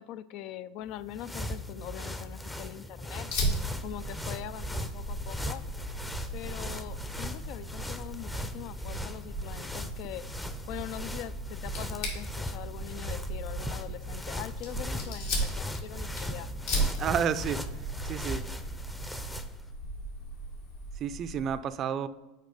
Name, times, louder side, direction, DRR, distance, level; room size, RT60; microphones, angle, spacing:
voice 1, 0.0-3.3 3.8-5.6 6.3-10.2 10.7-16.5, left 12 dB, 55° left, 15 dB, 0.3 m, -42 dB
sound 1, 0.9-19.6, left 1 dB, 10° left, 0.6 m, -38 dB
Fire, 3.3-21.6, right 1 dB, 75° left, 2.1 m, -37 dB
voice 2, 17.0-17.6 18.0-18.4 21.0-22.1, right 8 dB, 40° right, 13 dB, 0.4 m, -30 dB
6.6 x 4.8 x 4.8 m, 1.1 s
hypercardioid pair, 95°, 0 cm